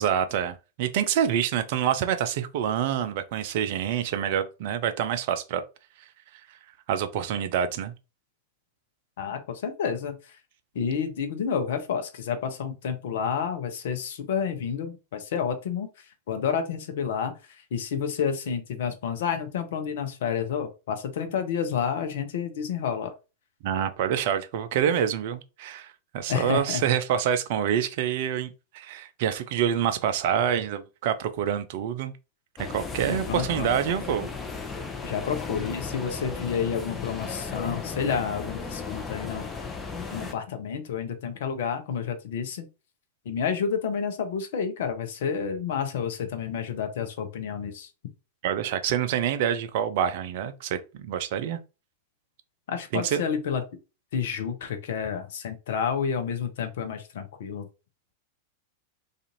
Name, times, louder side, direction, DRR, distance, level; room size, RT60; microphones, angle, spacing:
voice 1, 0.0-5.6 6.9-7.9 23.6-32.1 32.7-34.3 48.4-51.6 52.9-53.2, right 9 dB, 55° right, 0.4 m, -27 dB
voice 2, 9.2-10.2 10.7-15.9 16.3-17.4 17.7-23.1 26.3-26.9 33.1-33.7 35.0-39.5 40.1-42.7 43.3-47.9 52.7-53.6 54.1-57.7, left 7 dB, 60° left, 0.6 m, -30 dB
sound 1, 32.6-40.3, left 4 dB, 15° left, 0.6 m, -35 dB
2.5 x 2.5 x 2.8 m
figure-of-eight pair, 95°, 0 cm